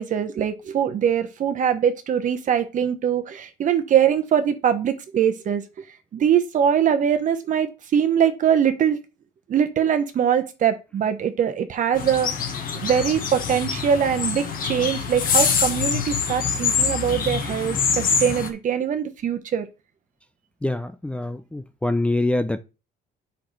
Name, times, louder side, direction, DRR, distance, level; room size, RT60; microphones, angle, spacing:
voice 1, 0.0-5.6 6.1-9.0 9.5-19.7, right 8 dB, 50° right, 1.1 m, -22 dB
sound 1, 11.9-18.5, left 6 dB, 55° left, 1.5 m, -25 dB
voice 2, 20.6-22.6, left 2 dB, 5° left, 0.5 m, -25 dB
8.5 x 5.8 x 3.3 m
cardioid pair, 110°, 17 cm